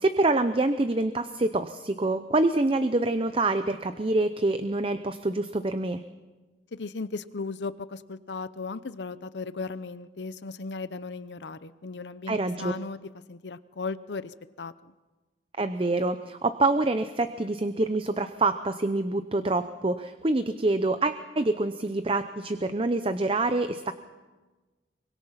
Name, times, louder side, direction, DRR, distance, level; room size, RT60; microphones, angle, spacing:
voice 1, 0.0-6.0 12.3-12.7 15.6-23.9, right 2 dB, 30° right, 10 dB, 0.7 m, -26 dB
voice 2, 6.7-13.0 13.3-14.9, left 4 dB, 80° left, 15 dB, 0.7 m, -36 dB
24.5 x 21.5 x 5.8 m, 1.2 s
head